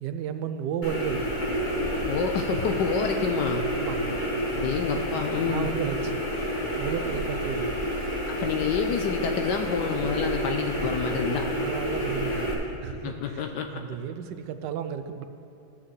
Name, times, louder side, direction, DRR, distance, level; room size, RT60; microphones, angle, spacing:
voice 1, 0.0-1.4 3.7-4.2 5.4-6.3 6.8-7.8 11.5-13.4 13.7-15.2, right 8 dB, 75° right, 9 dB, 1.0 m, -33 dB
sound 1, 0.8-12.5, equal, 25° left, 1.2 m, -29 dB
voice 2, 2.0-3.6 4.5-5.7 8.3-11.5 12.9-13.8, left 7 dB, 75° left, 5 dB, 1.0 m, -28 dB
13.5 x 8.6 x 3.2 m, 3.0 s
omnidirectional pair, 2.2 m